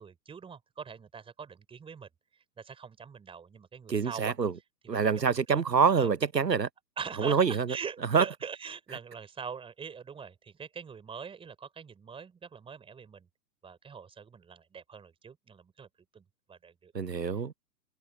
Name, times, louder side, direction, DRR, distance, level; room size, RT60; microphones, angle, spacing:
voice 1, 0.0-2.1 2.6-4.4 4.8-5.6 6.0-6.2 7.0-13.3 13.6-15.9 16.1-16.9 17.3-17.4, right 6 dB, 10° right, 4.3 m, -43 dB
voice 2, 3.9-4.5 4.9-6.7 7.2-7.7 8.1-8.2 16.9-17.5, right 6 dB, 90° right, 0.8 m, -25 dB
figure-of-eight pair, 115°, 49 cm